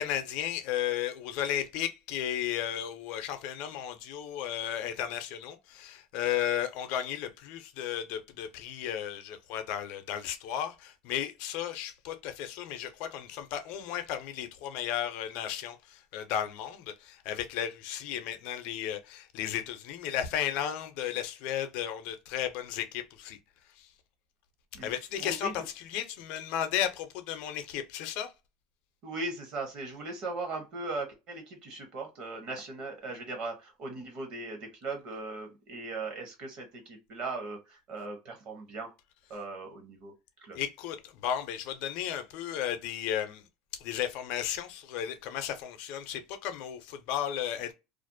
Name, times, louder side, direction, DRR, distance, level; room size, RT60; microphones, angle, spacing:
voice 1, 0.0-23.4 23.8-23.9 24.8-25.5 25.9-28.3 40.5-43.4 43.8-47.7, left 10 dB, 60° left, 0.5 m, -34 dB
voice 2, 25.2-25.5 29.0-38.9 39.3-40.1 40.4-40.6, right 3 dB, 45° right, 0.8 m, -38 dB
2.5 x 2.0 x 2.5 m
cardioid pair, 150°, 2 cm